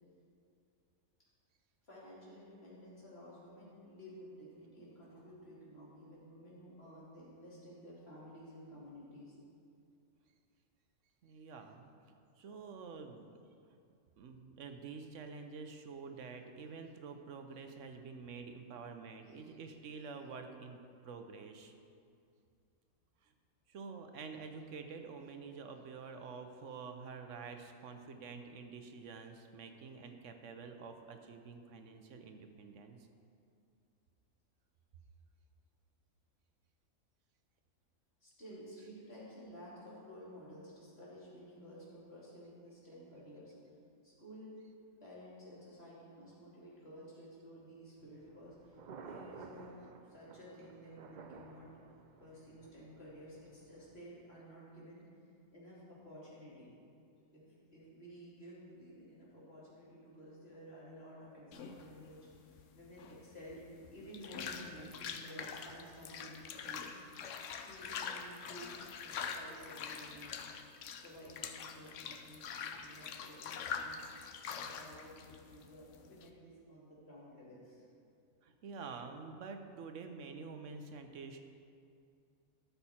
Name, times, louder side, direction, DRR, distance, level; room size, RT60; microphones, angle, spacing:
voice 1, 1.8-9.4 38.2-43.5 44.0-44.5 45.0-51.7 52.2-55.0 55.5-56.7 57.3-57.5 57.7-67.1 67.6-68.7 69.0-70.4 71.0-74.0 74.5-77.8, equal, 45° left, -8 dB, 3.0 m, -53 dB
voice 2, 11.2-13.4 13.7-13.8 14.2-20.8 21.0-21.7 23.2-23.3 23.7-33.1 78.4-81.4, right 5 dB, 65° right, 6 dB, 1.0 m, -48 dB
Thunder, 48.0-54.0, right 5 dB, 85° right, 0.4 m, -54 dB
sound 1, 61.5-76.3, left 6 dB, 70° left, 0.9 m, -44 dB
12.5 x 6.8 x 4.3 m, 2.4 s
omnidirectional pair, 1.5 m